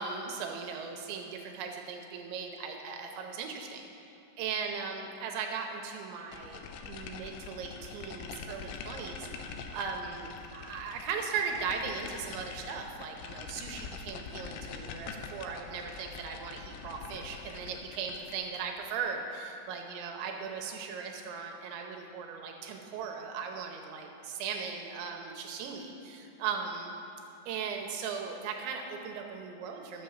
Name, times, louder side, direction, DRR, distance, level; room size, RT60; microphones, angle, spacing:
voice 1, 0.0-6.6 6.9-26.9 27.5-30.0, right 6 dB, 80° right, 3 dB, 2.9 m, -38 dB
sound 1, 6.3-18.7, left 5 dB, 90° left, 2.4 m, -44 dB
12.5 x 7.1 x 7.2 m, 3.0 s
omnidirectional pair, 5.8 m